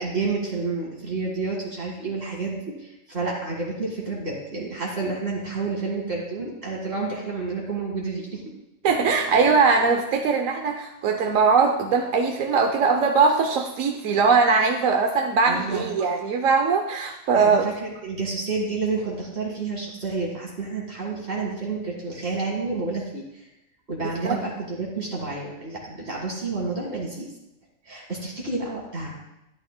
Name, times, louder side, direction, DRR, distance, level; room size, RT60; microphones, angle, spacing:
voice 1, 0.0-8.4 15.4-15.9 17.3-23.4 23.9-27.3 27.9-29.1, right 3 dB, 50° right, -3 dB, 2.2 m, -30 dB
voice 2, 8.8-17.7 24.2-24.4, right 5 dB, 70° right, 3 dB, 1.1 m, -21 dB
12.0 x 11.5 x 2.2 m, 0.90 s
omnidirectional pair, 1.4 m